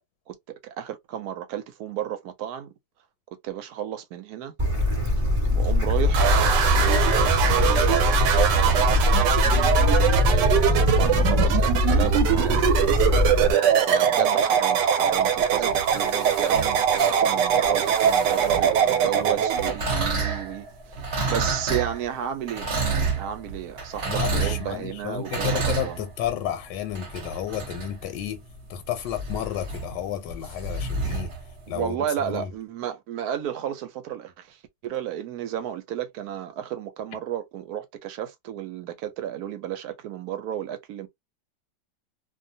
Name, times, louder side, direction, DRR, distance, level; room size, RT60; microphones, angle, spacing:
voice 1, 0.3-2.7 3.4-4.5 5.5-6.4 7.5-8.9 10.3-12.6 13.8-22.7 23.1-26.0 31.7-41.1, right 10 dB, 70° right, 1.0 m, -32 dB
Bird / Stream, 4.6-13.5, left 2 dB, 20° right, 1.2 m, -22 dB
sound 1, 6.1-19.7, right 8 dB, 90° right, 1.2 m, -22 dB
sound 2, 15.4-18.9 19.5-31.8, right 4 dB, 45° right, 0.9 m, -30 dB
voice 2, 24.0-28.4 28.7-31.3 31.7-32.5, left 10 dB, 85° left, 1.2 m, -32 dB
2.7 x 2.2 x 2.6 m
omnidirectional pair, 1.9 m